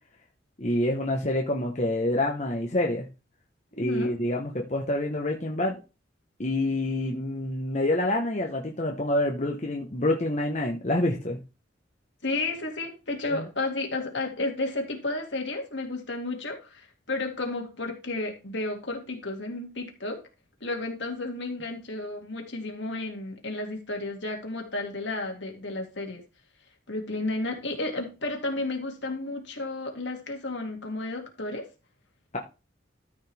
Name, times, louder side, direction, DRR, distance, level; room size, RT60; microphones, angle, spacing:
voice 1, 0.6-3.1 3.8-5.8 6.4-11.4 13.3-13.4, left 1 dB, 35° left, 0 dB, 1.1 m, -27 dB
voice 2, 3.8-4.1 12.2-20.2 20.6-26.2 26.9-31.7, left 2 dB, 70° left, 2 dB, 2.4 m, -32 dB
13.0 x 5.4 x 3.5 m, 0.30 s
head